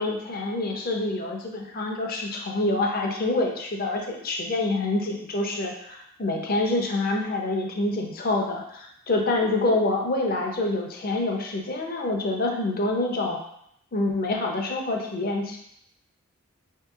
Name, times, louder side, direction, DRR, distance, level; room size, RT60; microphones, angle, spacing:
voice 1, 0.0-13.4 13.9-15.6, left 2 dB, 45° left, 1 dB, 0.5 m, -26 dB
5.3 x 2.8 x 2.4 m, 0.74 s
head